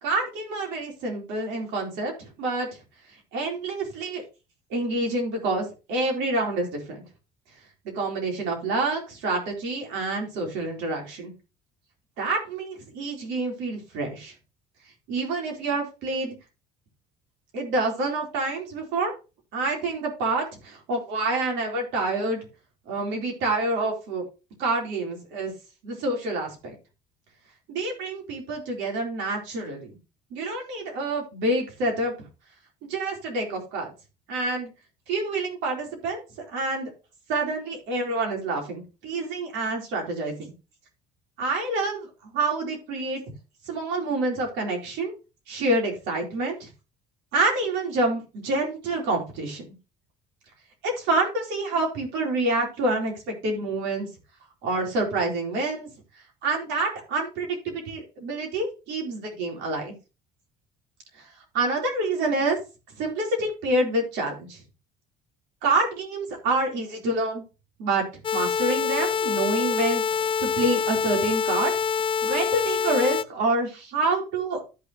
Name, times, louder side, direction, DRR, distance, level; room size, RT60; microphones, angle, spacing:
voice 1, 0.0-2.7 3.3-4.2 4.7-7.0 7.8-11.3 12.2-14.3 15.1-16.4 17.5-19.1 19.5-22.5 22.9-24.2 24.6-25.5 25.8-26.7 27.7-30.0 30.3-32.1 32.8-33.9 34.3-34.7 35.1-36.2 36.5-36.9 37.3-40.5 41.4-43.2 43.7-45.1 45.5-46.7 47.3-49.6 50.8-54.1 54.6-55.9 56.4-59.9 61.5-62.6 63.0-64.6 65.6-67.4 67.8-68.0 68.3-70.0 70.4-71.7 72.2-74.6, right 2 dB, 80° right, 1 dB, 4.1 m, -27 dB
sound 1, 68.2-73.2, left 6 dB, 30° left, 0.4 m, -25 dB
13.5 x 5.9 x 3.1 m, 0.30 s
supercardioid pair, 95°, 18 cm